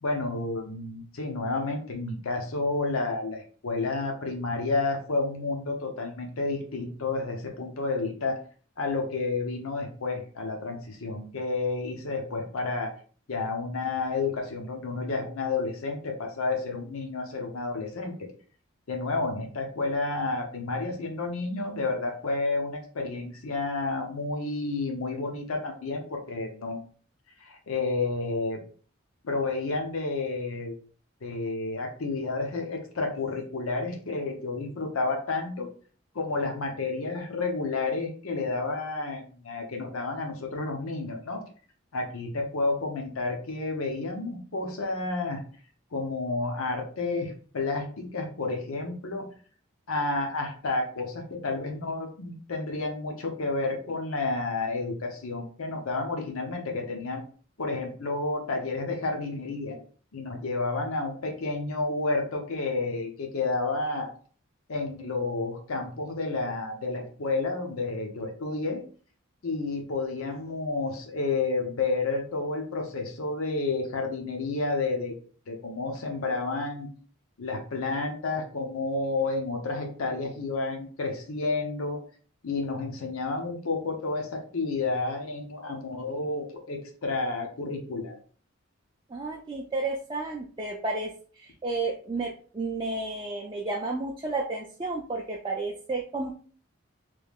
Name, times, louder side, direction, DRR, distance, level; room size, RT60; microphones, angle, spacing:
voice 1, 0.0-8.4 8.8-12.9 13.3-18.3 18.9-26.8 27.4-28.6 29.2-30.7 31.2-35.7 36.1-41.4 41.9-45.4 45.9-49.3 49.9-57.2 57.6-59.8 60.1-64.1 64.7-68.8 69.4-75.1 75.5-76.9 77.4-82.0 82.4-88.2, left 3 dB, 85° left, 3 dB, 0.7 m, -30 dB
voice 2, 89.1-96.3, right 3 dB, 20° right, -2 dB, 0.3 m, -32 dB
3.1 x 2.3 x 3.5 m, 0.42 s
head